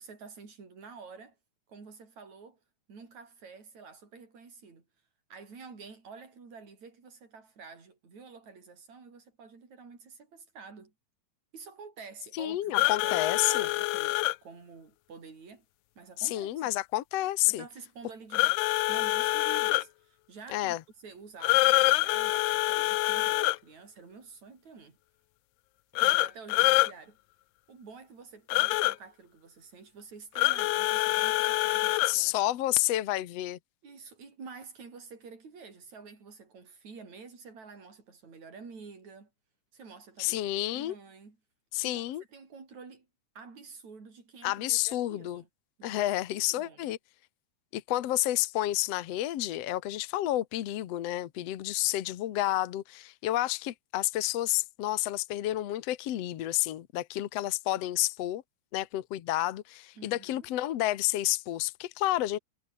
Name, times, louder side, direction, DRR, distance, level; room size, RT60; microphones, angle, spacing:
voice 1, 0.0-1.4 1.7-2.6 2.9-4.8 5.3-10.9 11.5-15.7 16.0-16.8 17.5-18.5 18.9-25.0 25.9-27.2 27.7-32.3 33.8-39.3 39.7-40.4 40.7-41.4 41.8-43.1 43.3-45.5 45.8-46.0 46.4-46.9 60.0-60.5, right 5 dB, 45° right, 6.7 m, -49 dB
voice 2, 12.3-13.7 16.2-17.6 20.5-20.8 32.1-33.6 40.2-40.9 41.7-42.2 44.4-45.4 45.8-47.0 47.7-58.4 58.7-62.4, left 15 dB, 70° left, 1.5 m, -30 dB
sound 1, 12.7-14.3 18.3-19.8 21.4-23.6 26.0-26.9 28.5-28.9 30.4-32.1, left 21 dB, 90° left, 2.7 m, -25 dB
omnidirectional pair, 4.5 m